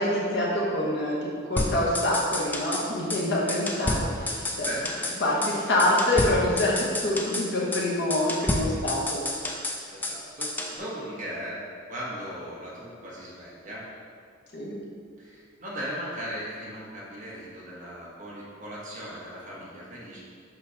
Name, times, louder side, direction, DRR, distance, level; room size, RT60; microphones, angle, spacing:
voice 1, 0.0-4.7 5.2-9.3 14.5-14.8, left 1 dB, 50° left, -4 dB, 1.1 m, -26 dB
sound 1, 1.6-2.8 3.1-3.2 3.5-5.2 5.4-5.5 5.8-7.5 7.7-7.8 8.1-10.2 10.4-10.8, left 1 dB, 10° left, 0.3 m, -30 dB
voice 2, 4.6-5.7 9.9-11.6 11.9-13.8 15.2-20.2, equal, 35° right, -6 dB, 1.3 m, -38 dB
5.8 x 3.1 x 5.6 m, 2.2 s
head